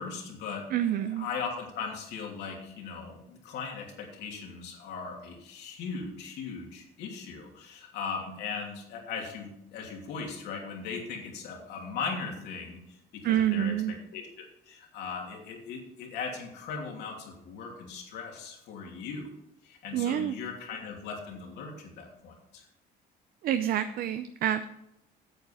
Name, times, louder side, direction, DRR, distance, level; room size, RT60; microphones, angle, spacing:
voice 1, 0.0-19.3 19.6-22.7, left 5 dB, 80° left, 0 dB, 2.9 m, -39 dB
voice 2, 0.7-1.3 13.2-13.9 19.9-20.4 23.4-24.6, right 11 dB, 60° right, 10 dB, 0.6 m, -27 dB
9.2 x 8.0 x 5.7 m, 0.84 s
cardioid pair, 110°, 17 cm